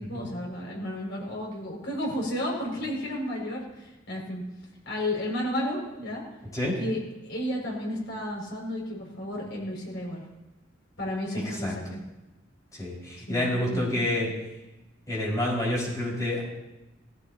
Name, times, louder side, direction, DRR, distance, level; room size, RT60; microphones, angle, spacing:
voice 1, 0.0-4.4 4.8-6.2 6.8-10.2 11.0-12.0 13.3-14.1, left 1 dB, 65° left, -2 dB, 6.4 m, -32 dB
voice 2, 12.8-14.3 15.1-16.4, left 1 dB, 20° left, -5 dB, 5.7 m, -28 dB
17.5 x 15.5 x 3.0 m, 0.98 s
head